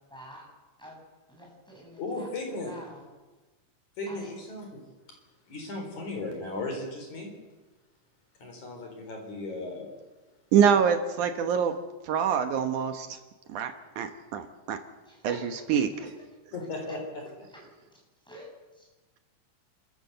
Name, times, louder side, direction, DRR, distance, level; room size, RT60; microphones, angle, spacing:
voice 1, 0.1-0.5 0.8-1.0 1.3-3.0 4.1-4.3 15.1-15.6 15.9-16.1 18.3-18.5 18.8-18.9, equal, ahead, -2 dB, 7.0 m, -47 dB
voice 2, 2.0-2.8 4.0-4.8 5.5-7.3 8.4-9.9 16.5-17.5, left 2 dB, 60° left, 2 dB, 5.5 m, -36 dB
voice 3, 10.5-11.7 12.0-13.2 13.5-14.8 15.2-16.1, right 7 dB, 70° right, 7 dB, 2.5 m, -25 dB
29.0 x 14.0 x 7.9 m, 1.2 s
omnidirectional pair, 3.8 m